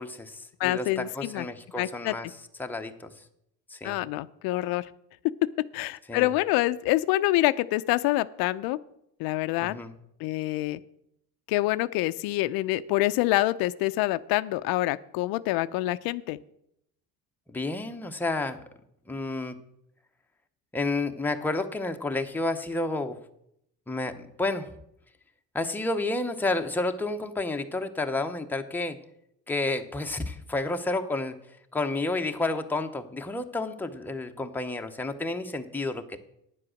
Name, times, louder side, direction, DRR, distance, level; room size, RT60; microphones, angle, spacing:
voice 1, 0.0-2.3 2.6-3.1 3.7-4.0 6.1-6.3 9.6-10.0 17.5-18.6 19.1-19.5 20.7-23.2 23.9-24.7 25.5-29.0 29.5-31.4 31.7-36.2, left 2 dB, 5° left, 5 dB, 0.7 m, -30 dB
voice 2, 0.6-1.5 1.8-2.1 3.8-4.9 5.7-8.8 9.2-9.8 10.2-10.8 11.5-16.4, left 17 dB, 80° left, 15 dB, 0.5 m, -26 dB
9.8 x 7.6 x 6.3 m, 0.76 s
cardioid pair, 130°, 36 cm